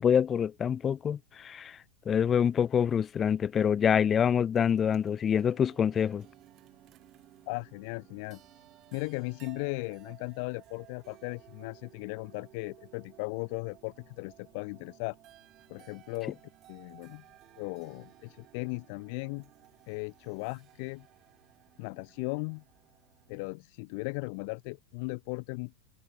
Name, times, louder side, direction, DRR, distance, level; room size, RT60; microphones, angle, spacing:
voice 1, 0.0-1.8 2.1-6.3, left 8 dB, 25° left, 0.3 m, -26 dB
sound 1, 4.5-23.4, right 14 dB, 40° right, 2.8 m, -58 dB
voice 2, 7.5-8.4 8.9-15.1 15.7-16.4 16.7-17.2 17.6-19.5 19.9-21.1 21.8-22.6 23.3-25.8, left 33 dB, 55° left, 1.6 m, -37 dB
open air
hypercardioid pair, 100°, 0 cm